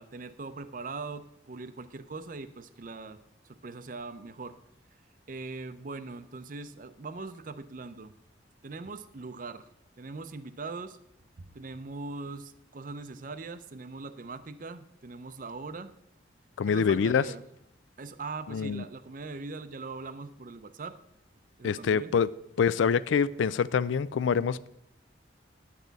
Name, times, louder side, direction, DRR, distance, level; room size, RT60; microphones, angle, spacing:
voice 1, 0.0-3.2 3.4-4.6 5.3-8.1 8.6-9.7 10.0-11.0 11.4-15.9 16.7-17.4 18.0-21.0 21.6-22.1, right 3 dB, 45° right, 0.5 m, -41 dB
voice 2, 16.6-17.2 18.5-18.8 21.6-22.3 22.6-24.7, left 6 dB, 85° left, 0.4 m, -25 dB
10.5 x 8.3 x 4.0 m
head